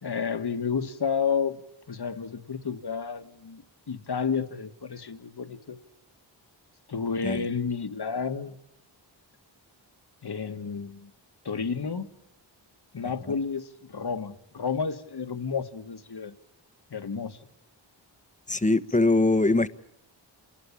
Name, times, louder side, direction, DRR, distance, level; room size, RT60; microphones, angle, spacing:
voice 1, 0.0-1.6 1.9-3.6 3.9-5.8 6.9-8.6 10.2-11.1 11.5-12.1 12.9-16.4 16.9-17.4, left 6 dB, 55° left, 1.8 m, -31 dB
voice 2, 18.5-19.7, left 2 dB, 15° left, 1.4 m, -22 dB
28.0 x 20.5 x 8.8 m
cardioid pair, 50°, 46 cm